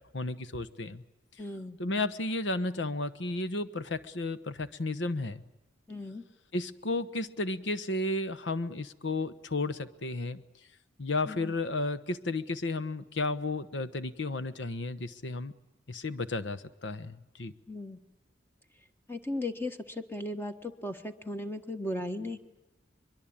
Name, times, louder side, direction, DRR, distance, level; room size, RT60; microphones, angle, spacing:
voice 1, 0.1-1.0 1.8-5.4 6.5-10.4 11.0-15.5 15.9-17.5, left 2 dB, 70° left, 13 dB, 1.1 m, -33 dB
voice 2, 1.4-1.8 5.9-6.2 11.2-11.5 17.7-18.0 19.1-22.4, left 1 dB, 10° left, 8 dB, 1.4 m, -36 dB
23.0 x 23.0 x 8.8 m, 0.92 s
head